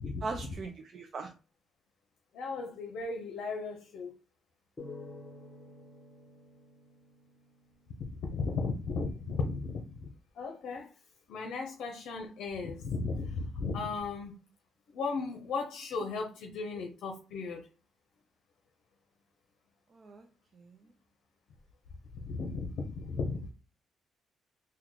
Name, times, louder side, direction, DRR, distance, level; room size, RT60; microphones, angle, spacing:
voice 1, 0.2-1.3 19.9-20.2 20.6-20.7, right 4 dB, 50° right, 5 dB, 0.4 m, -39 dB
voice 2, 2.3-4.2 8.0-10.1 10.4-10.9 11.3-14.3 14.9-17.6 22.2-23.5, left 4 dB, 80° left, 3 dB, 0.6 m, -36 dB
sound 1, 4.8-8.2, left 2 dB, 25° left, 1.3 m, -50 dB
3.6 x 2.2 x 3.0 m, 0.34 s
cardioid pair, 90°, 0 cm